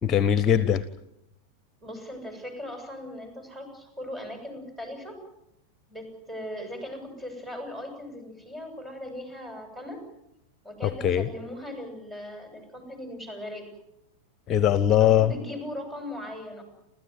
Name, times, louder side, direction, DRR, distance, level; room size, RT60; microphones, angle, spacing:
voice 1, 0.0-0.8 10.8-11.3 14.5-15.3, left 10 dB, 30° left, 16 dB, 0.9 m, -21 dB
voice 2, 1.8-5.2 5.9-10.0 10.6-13.7 15.0-16.6, left 1 dB, 10° right, 5 dB, 7.4 m, -39 dB
29.5 x 14.5 x 9.3 m, 0.84 s
figure-of-eight pair, 90°, 0 cm